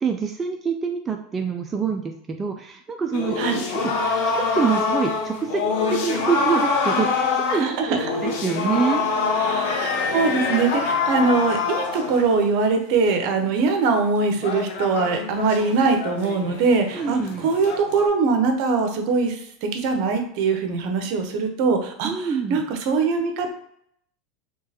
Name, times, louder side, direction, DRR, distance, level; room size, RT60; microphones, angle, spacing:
voice 1, 0.0-3.4 3.7-5.6 5.9-9.0 16.9-17.5 22.0-22.6, right 6 dB, 20° right, 3 dB, 0.3 m, -26 dB
sound 1, 3.1-12.4 14.2-18.1, left 4 dB, 70° left, 0.7 m, -25 dB
voice 2, 7.5-8.1 9.4-23.5, right 4 dB, 60° right, 5 dB, 0.8 m, -22 dB
3.6 x 3.1 x 2.8 m, 0.69 s
supercardioid pair, 125°, 0 cm